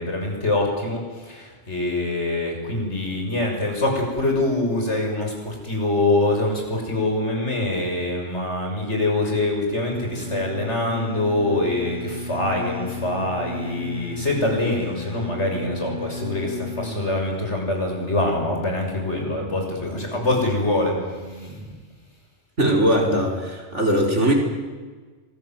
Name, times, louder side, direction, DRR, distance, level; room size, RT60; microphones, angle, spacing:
voice 1, 0.0-20.9 21.3-21.5, left 2 dB, 75° left, 1 dB, 7.1 m, -24 dB
sound 1, 9.9-21.8, left 3 dB, 5° right, 3.3 m, -35 dB
voice 2, 22.6-24.3, right 1 dB, 90° right, 1 dB, 5.3 m, -20 dB
25.5 x 20.0 x 9.3 m, 1.4 s
omnidirectional pair, 1.2 m